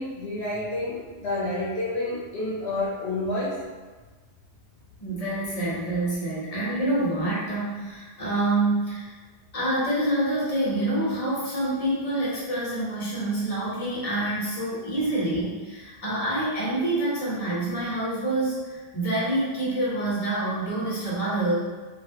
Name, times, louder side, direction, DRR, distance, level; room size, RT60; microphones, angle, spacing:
voice 1, 0.0-3.6, left 2 dB, 75° left, -6 dB, 0.9 m, -29 dB
voice 2, 5.0-9.1 9.5-21.6, right 1 dB, 35° left, -7 dB, 1.0 m, -27 dB
3.0 x 2.4 x 2.8 m, 1.3 s
omnidirectional pair, 1.1 m